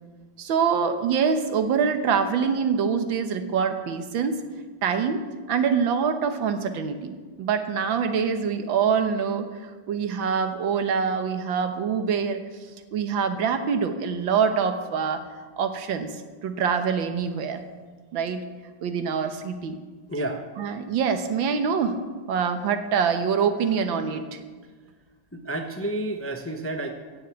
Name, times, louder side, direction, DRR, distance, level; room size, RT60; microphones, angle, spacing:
voice 1, 0.4-4.4 4.8-5.2 5.5-12.4 12.9-15.2 15.6-17.6 18.1-18.4 18.8-19.8 20.6-22.0 22.3-24.4, right 6 dB, 80° right, 8 dB, 1.8 m, -25 dB
voice 2, 20.1-20.4 25.3-26.9, right 1 dB, 15° left, 4 dB, 0.4 m, -30 dB
16.0 x 6.5 x 8.3 m, 1.5 s
omnidirectional pair, 2.1 m